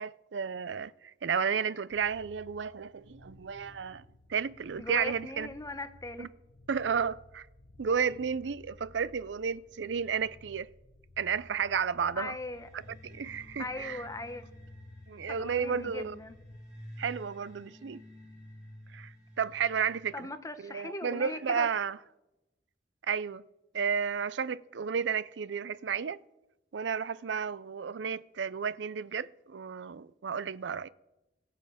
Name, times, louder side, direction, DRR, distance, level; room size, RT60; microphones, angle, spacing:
voice 1, 0.0-4.0 4.3-5.5 6.2-6.3 6.7-7.5 7.8-10.7 11.2-12.4 13.0-14.0 15.1-16.2 17.0-18.0 18.9-20.3 20.6-22.0 23.1-23.4 23.7-26.2 26.7-30.9, right 6 dB, 75° right, 0.5 m, -32 dB
sound 1, 1.9-16.6, left 2 dB, 80° left, 1.1 m, -56 dB
voice 2, 4.8-6.3 12.2-12.7 13.6-14.4 15.3-16.3 20.1-21.7, left 2 dB, 20° left, 1.0 m, -39 dB
sound 2, 12.5-20.2, equal, 5° right, 6.5 m, -51 dB
21.5 x 7.5 x 5.8 m
head